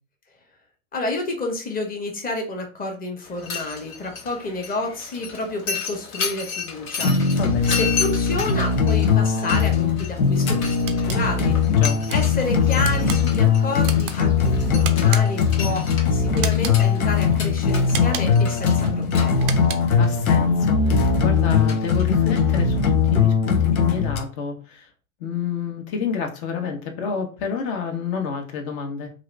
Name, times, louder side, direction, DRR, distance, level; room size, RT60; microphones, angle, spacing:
voice 1, 0.9-7.4 7.7-11.6 12.1-19.5, left 2 dB, 20° left, 2 dB, 1.0 m, -30 dB
Mechanisms, 3.2-22.9, left 6 dB, 70° left, 1.2 m, -34 dB
sound 1, 7.0-24.2, left 6 dB, 90° left, 0.7 m, -20 dB
voice 2, 7.4-7.8 11.8-12.0 19.7-24.9 25.2-29.1, left 6 dB, 50° left, 4 dB, 0.9 m, -30 dB
sound 2, 10.9-11.2 11.8-12.2 12.8-13.2 13.8-14.2 14.8-15.5 16.4-16.8 17.9-18.4 19.3-20.0, right 9 dB, 30° right, 0.3 m, -32 dB
2.9 x 2.5 x 3.1 m, 0.35 s
hypercardioid pair, 100°, 42 cm